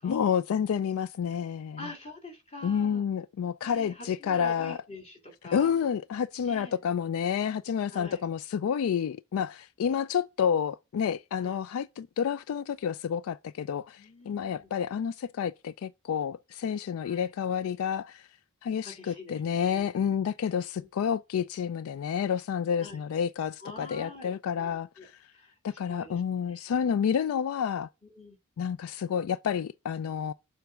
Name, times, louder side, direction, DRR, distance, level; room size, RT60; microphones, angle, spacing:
voice 1, 0.0-1.9 2.6-4.8 5.5-18.3 18.6-25.3 25.6-27.9 28.6-30.3, left 7 dB, 75° left, 0.3 m, -29 dB
voice 2, 1.8-3.0 3.6-5.7 6.4-6.8 7.9-8.2 11.4-11.6 14.0-14.7 17.0-17.3 18.8-19.9 22.8-23.0 23.6-25.1 25.3-26.7 28.1-28.4, left 2 dB, 30° left, 2.2 m, -46 dB
7.0 x 3.3 x 5.1 m
head